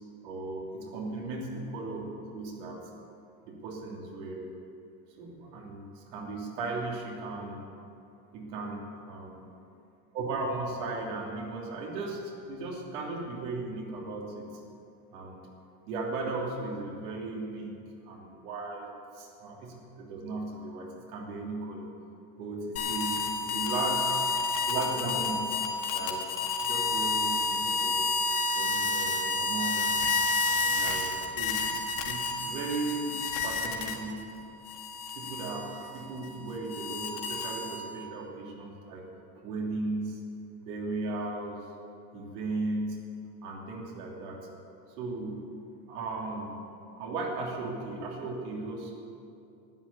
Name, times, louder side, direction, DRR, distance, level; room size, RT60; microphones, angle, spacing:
voice 1, 0.2-2.8 3.4-4.5 5.2-7.7 8.3-9.4 10.1-14.6 15.1-15.4 15.9-17.8 18.1-21.9 22.4-24.2 24.7-25.6 25.9-28.0 28.5-30.2 30.6-31.6 32.0-34.3 35.1-39.0 39.3-40.2 40.6-41.6 42.1-43.0 43.4-44.5 45.0-45.4 45.9-46.6 47.0-48.9, right 3 dB, 90° right, -2 dB, 3.2 m, -36 dB
sound 1, 22.8-34.2 34.7-38.0, left 3 dB, 75° left, 2.0 m, -30 dB
13.0 x 9.8 x 8.4 m, 2.6 s
cardioid pair, 180°, 44 cm